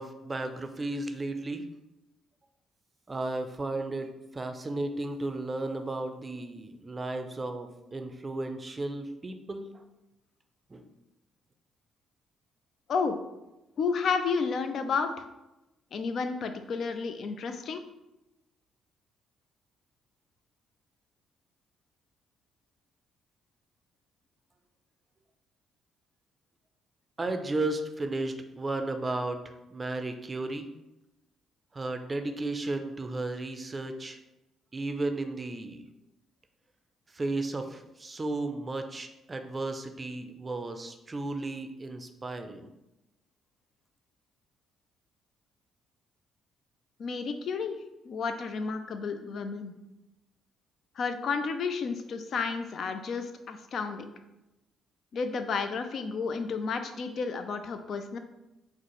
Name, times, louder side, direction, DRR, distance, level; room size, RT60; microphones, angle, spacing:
voice 1, 0.0-1.7 3.1-9.8 10.7-10.8 27.2-30.7 31.7-34.2 34.7-35.9 37.1-42.7, right 2 dB, 30° right, 7 dB, 0.4 m, -34 dB
voice 2, 13.8-15.2 15.9-17.8 47.0-47.8 48.0-49.7 51.0-54.1 55.1-58.2, left 5 dB, 60° left, 8 dB, 0.4 m, -31 dB
4.1 x 2.1 x 3.0 m, 0.95 s
hypercardioid pair, 50°, 0 cm